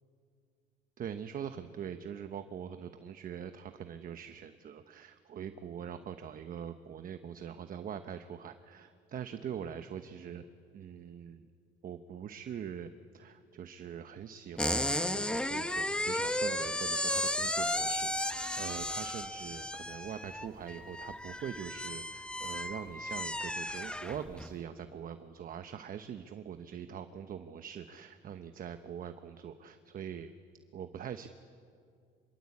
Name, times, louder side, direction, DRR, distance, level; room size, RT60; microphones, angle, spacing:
voice 1, 1.0-10.4 10.7-11.5 11.8-30.3 30.7-31.3, right 8 dB, 45° right, 9 dB, 1.0 m, -43 dB
sound 1, 14.6-24.5, left 1 dB, 5° left, 1.0 m, -34 dB
26.0 x 22.5 x 8.5 m, 2.3 s
cardioid pair, 125°, 20 cm